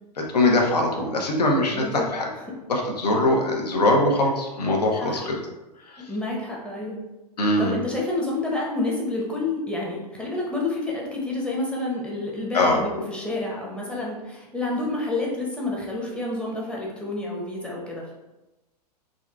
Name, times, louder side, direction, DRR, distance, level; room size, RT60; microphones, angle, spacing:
voice 1, 0.2-2.3 2.7-5.4 5.9-6.0 7.4-7.7 12.5-12.8, left 2 dB, 75° left, 0 dB, 0.7 m, -22 dB
voice 2, 1.7-2.0 5.0-5.2 6.0-7.0 7.6-18.1, left 2 dB, 5° left, -3 dB, 0.6 m, -29 dB
3.6 x 2.4 x 2.3 m, 1.0 s
figure-of-eight pair, 100°, 21 cm